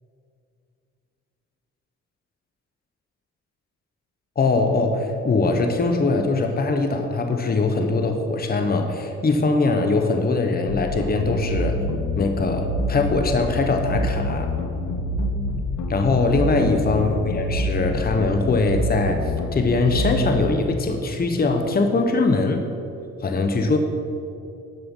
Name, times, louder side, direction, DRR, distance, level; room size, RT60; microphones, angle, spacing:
voice 1, 4.4-11.8 12.1-14.5 15.9-19.2 19.5-22.6 23.2-23.8, left 3 dB, 30° left, 5 dB, 1.1 m, -22 dB
sound 1, 10.7-20.3, left 1 dB, 90° left, 1.2 m, -26 dB
12.5 x 7.7 x 5.4 m, 2.6 s
cardioid pair, 90°, 30 cm